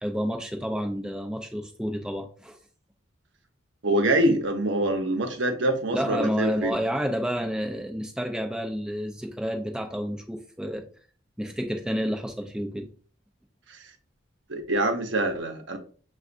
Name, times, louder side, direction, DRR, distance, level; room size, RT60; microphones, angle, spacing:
voice 1, 0.0-2.6 5.9-10.9 11.4-12.9, equal, 5° right, 0.5 m, -30 dB
voice 2, 3.8-6.8 13.7-13.8 14.5-15.8, right 1 dB, 65° right, 0.9 m, -25 dB
7.0 x 2.4 x 2.5 m
head